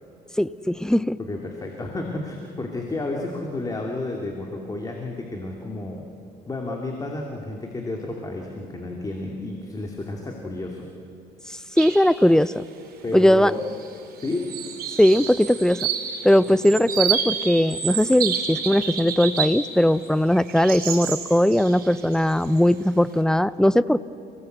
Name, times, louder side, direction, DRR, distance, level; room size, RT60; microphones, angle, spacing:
voice 1, 0.4-1.2 11.5-12.6 13.1-13.5 15.0-15.8 16.2-24.0, left 1 dB, 5° left, 17 dB, 0.6 m, -19 dB
voice 2, 1.2-6.0 6.5-10.9 13.0-13.7 14.2-14.5 16.5-16.6, left 2 dB, 20° left, 1 dB, 2.7 m, -31 dB
sound 1, 11.8-12.1 12.4-12.5 13.5-13.9 14.2-19.7 20.0-22.7, right 8 dB, 60° right, 4.9 m, -29 dB
30.0 x 18.5 x 8.1 m, 2.7 s
cardioid pair, 110°, 17 cm